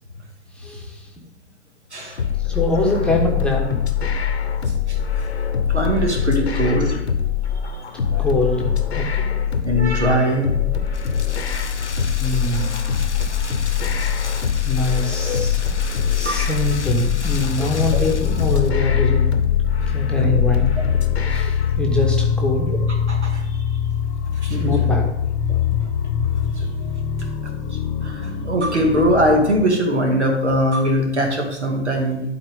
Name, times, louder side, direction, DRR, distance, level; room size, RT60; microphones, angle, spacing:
voice 1, 0.5-1.1 2.4-3.8 7.9-9.4 12.1-12.8 14.6-15.6 16.1-19.3 19.9-20.8 21.3-22.7 24.6-25.1, left 2 dB, 5° left, -2 dB, 1.1 m, -23 dB
voice 2, 1.9-2.3 4.9-5.0 5.7-7.0 8.1-8.3 9.6-10.5 12.3-12.7 15.2-15.4 16.2-16.5 17.6-18.1 20.2-20.3 22.7-22.8 23.1-23.5 24.2-24.9 25.5-25.8 26.1-26.2 26.5-26.7 27.7-32.2, equal, 80° right, 2 dB, 2.2 m, -22 dB
sound 1, 2.2-21.8, left 7 dB, 70° left, 1.1 m, -23 dB
Rain, 10.9-18.7, left 4 dB, 85° left, 0.8 m, -34 dB
sound 2, 16.6-29.7, left 8 dB, 25° left, 0.9 m, -23 dB
12.0 x 4.4 x 5.3 m, 0.92 s
figure-of-eight pair, 110°, 34 cm